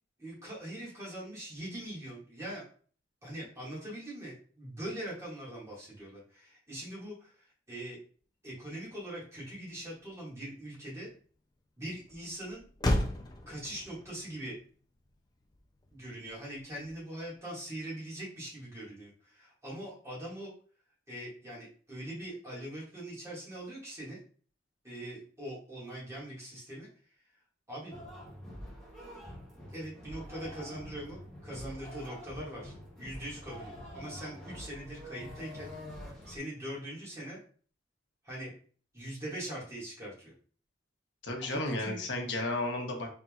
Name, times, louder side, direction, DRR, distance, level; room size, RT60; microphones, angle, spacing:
voice 1, 0.2-2.6 3.2-8.0 8.4-11.1 11.8-12.7 13.5-14.6 15.9-20.5 21.1-24.2 24.8-26.9 27.7-28.0 29.7-35.7 36.3-37.4 38.2-38.5 38.9-40.3 41.4-42.0, right 1 dB, 15° right, -6 dB, 2.0 m, -42 dB
Motor vehicle (road), 8.7-17.4, left 1 dB, 20° left, 0.5 m, -38 dB
sound 1, 27.9-36.4, left 1 dB, ahead, 1.1 m, -46 dB
voice 2, 41.2-43.1, left 2 dB, 75° left, 2 dB, 1.0 m, -33 dB
4.2 x 3.5 x 2.4 m, 0.42 s
head